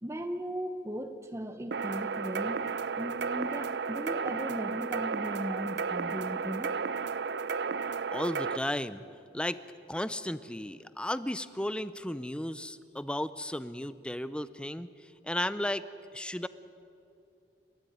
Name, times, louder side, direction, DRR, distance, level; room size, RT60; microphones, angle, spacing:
voice 1, 0.0-6.8, equal, 15° right, 7 dB, 0.9 m, -37 dB
sound 1, 1.7-8.6, right 5 dB, 70° right, 0.5 m, -33 dB
voice 2, 8.1-9.0 9.3-9.6 9.9-15.9 16.1-16.5, left 1 dB, 5° left, 14 dB, 0.6 m, -34 dB
29.0 x 13.0 x 9.3 m, 2.7 s
head